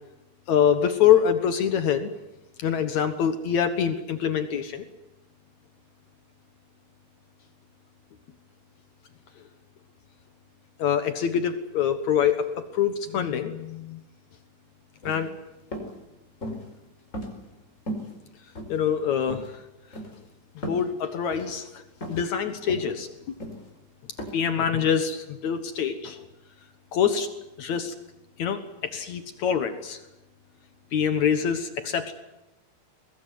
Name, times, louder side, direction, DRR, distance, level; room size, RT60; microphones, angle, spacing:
voice 1, 0.5-2.1 2.6-4.9 10.8-14.0 15.0-15.3 18.7-19.5 20.7-21.8 22.1-23.1 24.3-26.2 26.9-27.3 27.6-27.9 28.4-30.0 30.9-32.1, left 8 dB, 75° left, 9 dB, 1.7 m, -25 dB
sound 1, 15.0-15.3 15.7-15.9 16.4-16.7 17.1-17.6 17.9-18.1 18.6-19.0 19.3-19.5 19.9-20.2 20.6-20.9 21.3-21.5 22.0-22.3 22.7-22.9 23.4-23.7 24.2-24.3, equal, 15° left, 4.7 m, -35 dB
23.0 x 20.5 x 9.5 m, 0.95 s
omnidirectional pair, 5.4 m